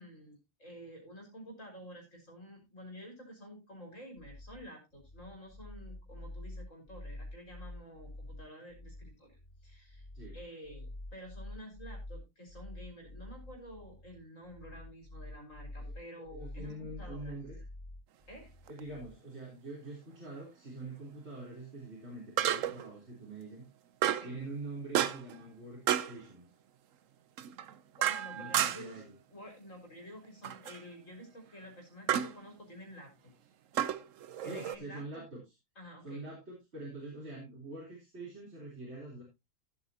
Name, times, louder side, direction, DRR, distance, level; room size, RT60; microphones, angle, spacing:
voice 1, 0.0-10.1 10.3-17.4 18.3-18.5 24.1-24.4 28.0-29.0 29.3-33.3 34.4-35.2 35.8-36.3, equal, 75° left, 2 dB, 4.3 m, -50 dB
sound 1, 4.2-19.2, left 1 dB, 35° left, 4.5 m, -47 dB
voice 2, 16.2-17.6 18.7-23.6 24.2-26.5 28.3-29.1 34.4-35.4 36.0-39.2, right 2 dB, 55° right, -4 dB, 3.9 m, -45 dB
sound 2, 18.7-18.8 22.4-22.9 24.0-24.4 24.9-25.4 25.9-26.2 27.4-29.0 30.4-30.8 32.1-32.4 33.7-34.8, right 10 dB, 75° right, 1.1 m, -31 dB
15.0 x 8.3 x 2.8 m, 0.23 s
omnidirectional pair, 1.4 m